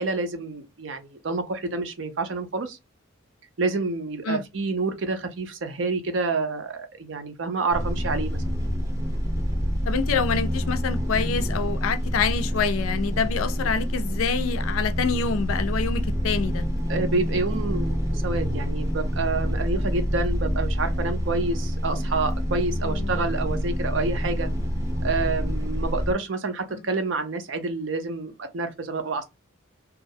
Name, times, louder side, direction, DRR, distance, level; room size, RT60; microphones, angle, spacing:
voice 1, 0.0-2.8 3.6-8.4 16.9-24.5 25.0-29.2, right 3 dB, 65° right, 0.5 m, -28 dB
sound 1, 7.7-26.1, equal, 15° right, 0.6 m, -27 dB
voice 2, 9.9-16.6 22.8-23.3 26.7-26.8, left 5 dB, 85° left, 0.4 m, -26 dB
2.4 x 2.0 x 2.6 m
head